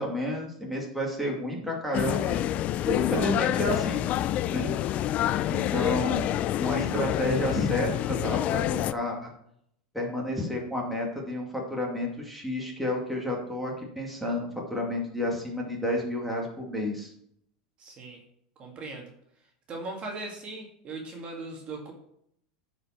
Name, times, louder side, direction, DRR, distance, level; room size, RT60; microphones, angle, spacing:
voice 1, 0.0-2.4 2.9-4.1 4.5-4.7 5.5-6.3 6.6-9.3 9.9-17.1, left 1 dB, ahead, -2 dB, 2.3 m, -30 dB
sound 1, 1.9-8.9, left 13 dB, 40° left, 0.4 m, -27 dB
voice 2, 17.8-18.2 18.6-19.1 19.7-21.9, right 2 dB, 30° right, 1 dB, 2.1 m, -39 dB
9.7 x 5.2 x 5.9 m, 0.71 s
supercardioid pair, 135°, 4 cm